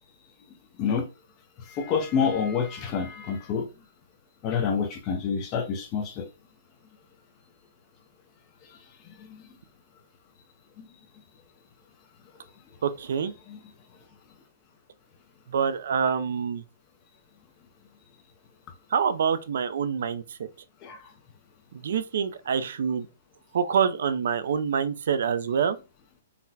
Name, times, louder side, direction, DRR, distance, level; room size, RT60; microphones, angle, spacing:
voice 1, 1.8-3.7 4.4-6.2 20.8-21.0, left 6 dB, 20° left, 0.4 m, -27 dB
voice 2, 12.8-13.3 15.5-16.6 18.9-20.2 21.7-23.1 23.5-25.8, right 7 dB, 60° right, 0.4 m, -26 dB
3.9 x 2.1 x 2.7 m
hypercardioid pair, 170°, 0 cm